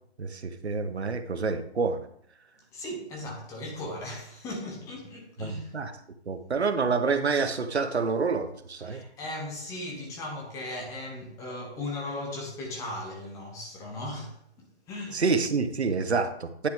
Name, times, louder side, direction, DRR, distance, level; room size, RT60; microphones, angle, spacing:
voice 1, 0.2-2.0 5.4-5.9 6.3-9.0 15.1-16.7, right 4 dB, 75° right, 1.1 m, -28 dB
voice 2, 2.7-5.7 8.8-15.2, left 1 dB, 10° left, 1.0 m, -37 dB
9.9 x 5.8 x 3.6 m
figure-of-eight pair, 145°, 33 cm